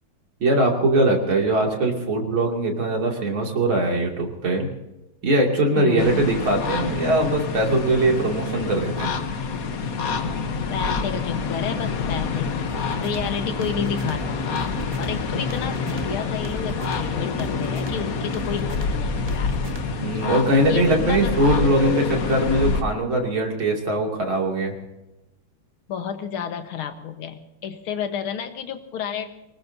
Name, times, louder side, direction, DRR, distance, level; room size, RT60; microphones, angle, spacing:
voice 1, 0.4-4.7 5.2-9.1 20.0-24.8, right 1 dB, 75° right, 1 dB, 3.5 m, -21 dB
voice 2, 5.8-6.3 10.7-14.6 15.0-19.5 20.7-21.3 25.9-29.3, left 7 dB, 90° left, 7 dB, 2.2 m, -31 dB
sound 1, 6.0-22.8, left 5 dB, 50° left, 1.3 m, -27 dB
sound 2, 12.7-20.2, right 2 dB, 20° right, 0.7 m, -36 dB
24.5 x 19.5 x 2.8 m, 1.0 s
omnidirectional pair, 2.3 m